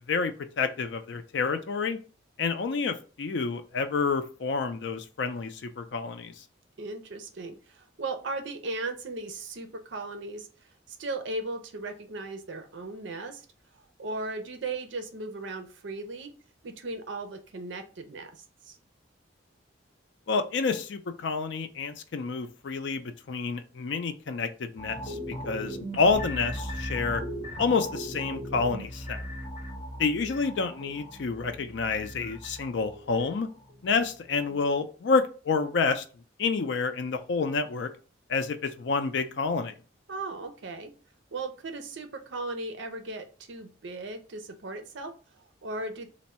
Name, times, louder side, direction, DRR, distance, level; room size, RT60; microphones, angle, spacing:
voice 1, 0.1-2.0 2.4-6.4 20.3-27.2 27.6-29.2 30.0-33.5 33.8-36.0 36.4-37.9 38.3-39.7, left 4 dB, 65° left, 9 dB, 0.4 m, -29 dB
voice 2, 6.8-13.5 14.0-16.3 16.6-18.8 40.1-40.9 41.3-46.1, right 2 dB, 70° right, 7 dB, 0.5 m, -37 dB
sound 1, 24.8-34.1 34.4-34.6, equal, 30° left, 0.9 m, -38 dB
3.4 x 2.0 x 4.2 m, 0.36 s
head